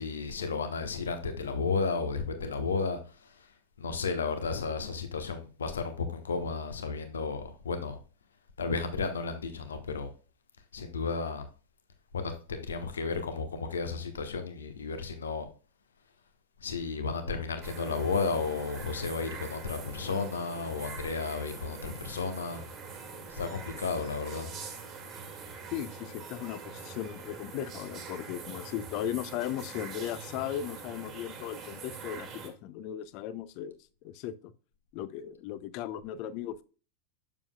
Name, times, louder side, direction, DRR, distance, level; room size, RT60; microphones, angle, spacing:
voice 1, 0.0-8.0 8.6-10.1 10.7-11.5 12.1-15.5 16.6-22.6 23.3-24.5, left 4 dB, 70° left, 1.1 m, -33 dB
sound 1, 17.6-32.5, right 5 dB, 30° right, 1.5 m, -44 dB
voice 2, 25.7-34.5 34.9-36.6, left 11 dB, 45° left, 0.5 m, -37 dB
7.2 x 6.8 x 2.2 m
figure-of-eight pair, 90°, 0 cm